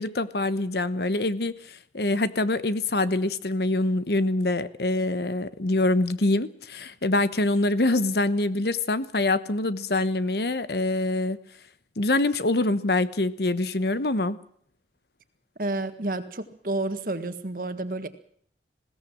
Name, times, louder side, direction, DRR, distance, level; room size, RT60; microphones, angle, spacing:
voice 1, 0.0-11.4 12.0-14.4, left 2 dB, 65° left, 14 dB, 1.1 m, -25 dB
voice 2, 15.6-18.1, right 2 dB, 50° right, 9 dB, 1.8 m, -30 dB
20.5 x 17.0 x 7.5 m, 0.62 s
head